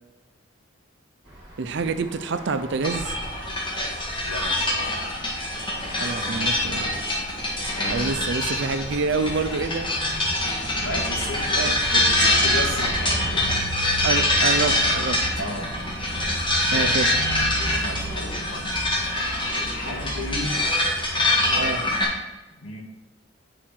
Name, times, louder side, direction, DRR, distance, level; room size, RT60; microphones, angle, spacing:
sound 1, 1.2-13.6, equal, 25° right, 2.3 m, -40 dB
voice 1, 1.6-3.1 5.9-7.0 7.9-9.9 11.6-11.7 14.0-15.2 16.7-17.1 21.5-21.8, right 4 dB, 60° right, 10 dB, 0.5 m, -27 dB
sound 2, 2.8-22.0, left 1 dB, 25° left, 1.7 m, -24 dB
voice 2, 7.7-8.1 10.8-13.7 15.4-15.8 16.7-16.9 17.7-18.7 19.6-20.5 22.6-22.8, left 2 dB, 70° left, -2 dB, 1.9 m, -33 dB
9.0 x 4.9 x 4.5 m, 1.1 s
head